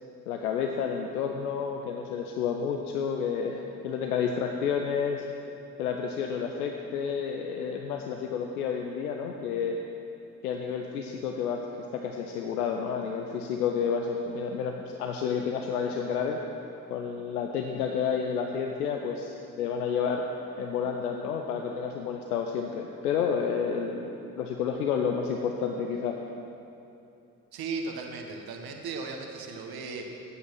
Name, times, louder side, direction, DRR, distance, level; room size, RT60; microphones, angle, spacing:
voice 1, 0.3-5.3 5.8-9.8 10.4-11.7 11.9-16.4 16.9-20.3 20.6-26.2, left 6 dB, 85° left, 3 dB, 0.6 m, -30 dB
voice 2, 27.5-30.1, right 4 dB, 55° right, 3 dB, 1.4 m, -36 dB
12.5 x 8.4 x 6.2 m, 2.7 s
figure-of-eight pair, 40°, 44 cm